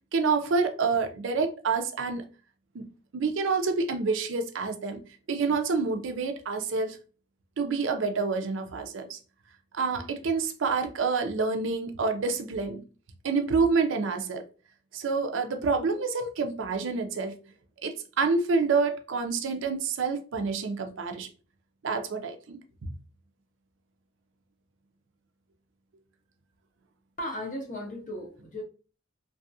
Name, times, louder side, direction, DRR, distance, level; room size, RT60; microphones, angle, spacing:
voice 1, 0.1-2.3 2.7-5.0 5.3-7.0 7.6-9.2 9.7-12.8 13.2-14.4 14.9-17.3 17.8-21.3 21.8-23.0, right 4 dB, 65° right, 0.5 m, -28 dB
voice 2, 27.2-28.6, left 1 dB, 40° left, 0.7 m, -36 dB
2.7 x 2.3 x 2.6 m
head